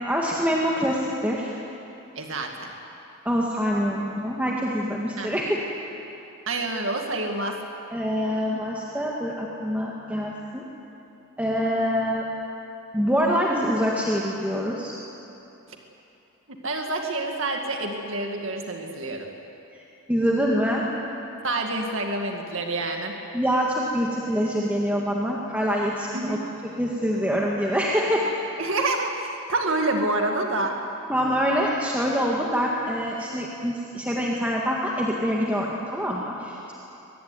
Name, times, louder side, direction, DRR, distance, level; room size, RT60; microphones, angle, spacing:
voice 1, 0.0-1.5 3.3-5.6 7.9-10.6 11.4-12.3 12.9-14.9 19.7-19.8 20.1-20.8 23.3-26.4 26.6-28.3 31.1-36.7, equal, 5° right, -3 dB, 1.9 m, -25 dB
voice 2, 2.2-2.7 5.2-5.3 6.5-7.6 16.5-19.3 21.4-23.2 26.1-26.4 28.6-30.8, right 2 dB, 60° right, 2 dB, 2.1 m, -27 dB
23.5 x 22.5 x 9.6 m, 2.9 s
head